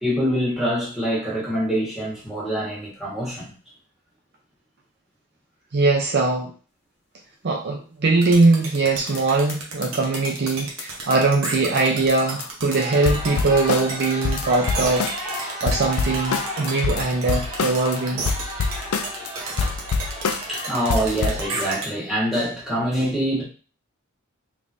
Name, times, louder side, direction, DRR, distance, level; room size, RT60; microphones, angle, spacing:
voice 1, 0.0-3.5 19.6-19.7 20.5-23.4, equal, ahead, -7 dB, 1.4 m, -25 dB
voice 2, 5.7-6.5 7.4-18.2, right 3 dB, 50° right, 1 dB, 0.5 m, -21 dB
sound 1, 8.2-21.9, right 3 dB, 70° right, 0.9 m, -33 dB
sound 2, 9.1-9.2 9.5-9.6 9.8-9.9 10.1-10.2 10.5-10.6 10.8-10.9 11.1-11.2 11.4-11.5 11.8-11.9 12.1-12.5 12.7-12.8 13.0-15.4 15.7-18.0 18.3-19.3 19.6-20.6 20.9-21.5, left 5 dB, 70° left, 0.4 m, -26 dB
sound 3, 12.7-21.7, equal, 20° right, 1.8 m, -33 dB
3.5 x 3.1 x 2.6 m, 0.37 s
head